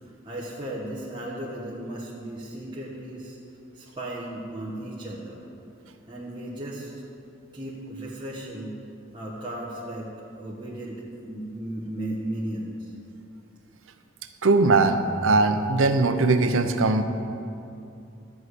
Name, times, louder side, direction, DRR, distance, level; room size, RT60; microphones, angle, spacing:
voice 1, 0.0-3.4 3.7-5.4 6.1-6.9 7.5-8.8 9.1-10.1 10.4-12.9, right 1 dB, 25° right, -6 dB, 1.2 m, -35 dB
voice 2, 14.4-17.0, right 3 dB, 75° right, 8 dB, 0.7 m, -20 dB
13.5 x 4.8 x 8.2 m, 2.6 s
head